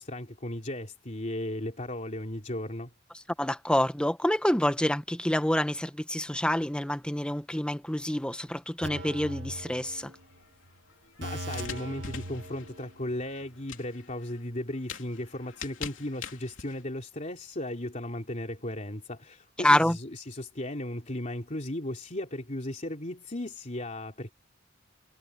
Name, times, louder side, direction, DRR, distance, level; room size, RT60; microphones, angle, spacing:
voice 1, 0.0-2.9 11.2-24.3, left 1 dB, 40° left, 3.2 m, -36 dB
voice 2, 3.4-10.1 19.6-20.0, left 1 dB, 5° left, 1.1 m, -27 dB
sound 1, 8.8-10.4 10.7-10.8 11.2-13.1 13.4-13.5, right 1 dB, 65° right, 1.9 m, -40 dB
sound 2, 9.9-16.8, left 6 dB, 80° left, 3.3 m, -45 dB
head